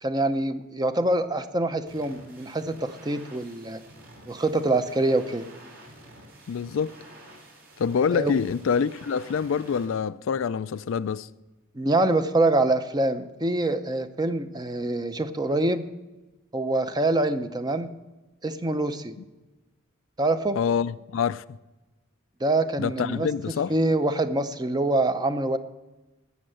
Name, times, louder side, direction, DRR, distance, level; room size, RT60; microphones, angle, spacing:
voice 1, 0.0-3.8 4.3-5.5 8.1-8.3 11.7-15.8 16.5-17.9 18.4-19.2 20.2-20.6 22.4-23.3 23.7-25.6, right 2 dB, 20° right, 0.6 m, -25 dB
sound 1, 1.9-9.9, right 1 dB, 50° right, 4.2 m, -49 dB
voice 2, 6.5-7.0 7.8-11.3 20.6-21.4 22.8-23.7, left 6 dB, 65° left, 0.3 m, -26 dB
17.5 x 6.5 x 7.7 m
head